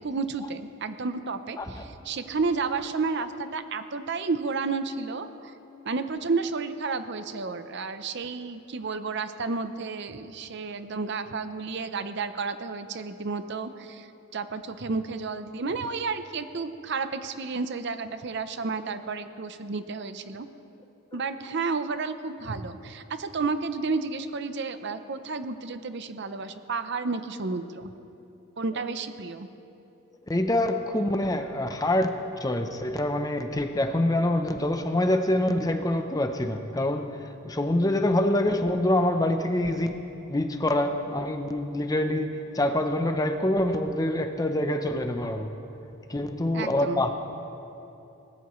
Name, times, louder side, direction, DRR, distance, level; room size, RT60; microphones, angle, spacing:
voice 1, 0.0-5.5 5.8-14.1 14.3-20.5 21.1-27.9 28.6-29.5 46.5-47.0, right 4 dB, 55° right, 10 dB, 0.6 m, -31 dB
voice 2, 30.3-40.0 40.3-45.6 46.1-47.1, left 1 dB, 15° left, 7 dB, 0.7 m, -26 dB
22.5 x 19.5 x 3.1 m, 2.9 s
head